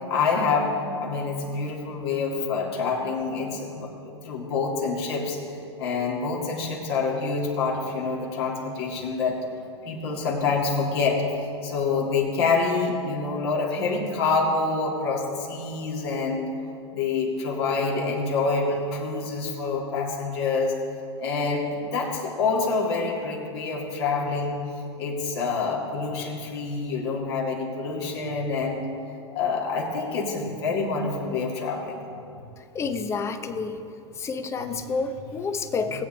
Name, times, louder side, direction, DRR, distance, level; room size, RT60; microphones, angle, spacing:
voice 1, 0.0-5.4 5.8-9.4 9.8-16.5 16.9-20.8 21.2-24.6 25.0-28.9 29.3-32.1 35.9-36.0, left 4 dB, 60° left, -2 dB, 2.2 m, -27 dB
voice 2, 32.6-33.8 34.1-36.0, left 4 dB, 20° left, 9 dB, 0.7 m, -29 dB
18.5 x 8.4 x 3.3 m, 2.6 s
figure-of-eight pair, 100°, 15 cm